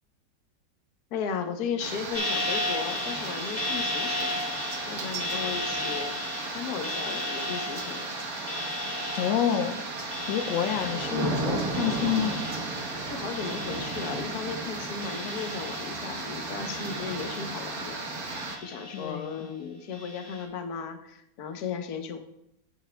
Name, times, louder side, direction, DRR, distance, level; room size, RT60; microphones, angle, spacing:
voice 1, 1.1-4.3 4.9-8.1 12.7-22.2, left 6 dB, 60° left, 7 dB, 1.3 m, -36 dB
sound 1, 1.8-18.6, right 2 dB, 55° right, 1.6 m, -34 dB
sound 2, 2.1-14.7 15.0-16.2 16.6-17.9 18.3-19.3 19.9-20.4, left 1 dB, 10° left, 1.5 m, -35 dB
voice 2, 9.2-9.8 10.3-12.5 18.9-19.4, left 9 dB, 85° left, 7 dB, 1.3 m, -28 dB
16.0 x 7.2 x 2.3 m, 0.81 s
omnidirectional pair, 2.0 m